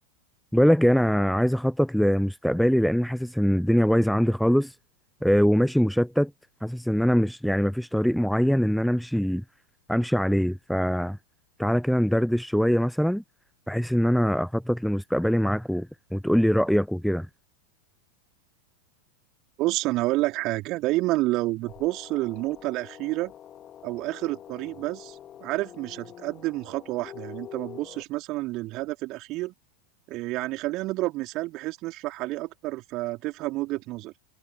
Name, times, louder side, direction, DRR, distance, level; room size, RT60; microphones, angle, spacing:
voice 1, 0.5-4.7 5.2-6.3 6.6-9.4 9.9-11.2 11.6-13.2 13.7-15.9 16.1-17.3, equal, ahead, 0.4 m, -23 dB
voice 2, 19.6-23.3 23.8-29.5 30.1-34.1, right 19 dB, 40° right, 3.9 m, -29 dB
sound 1, 21.7-28.0, left 10 dB, 30° left, 3.5 m, -45 dB
figure-of-eight pair, 90°, 0 cm